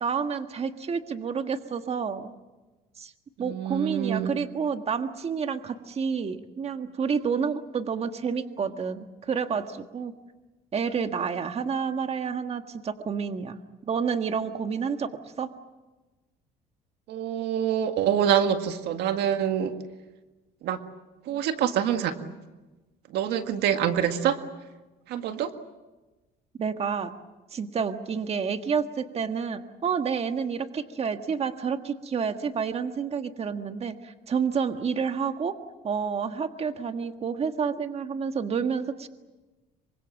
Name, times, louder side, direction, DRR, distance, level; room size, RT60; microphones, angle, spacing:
voice 1, 0.0-2.3 3.0-3.1 3.4-10.1 10.7-13.6 13.9-15.1 15.4-15.5 26.6-27.1 27.5-35.5 35.8-39.1, right 6 dB, 35° right, 7 dB, 1.6 m, -29 dB
voice 2, 3.4-4.3 17.1-19.7 20.6-20.8 21.3-22.2 23.1-24.4 25.1-25.5, right 9 dB, 80° right, 7 dB, 1.9 m, -26 dB
26.5 x 25.0 x 7.4 m, 1.2 s
cardioid pair, 110°, 17 cm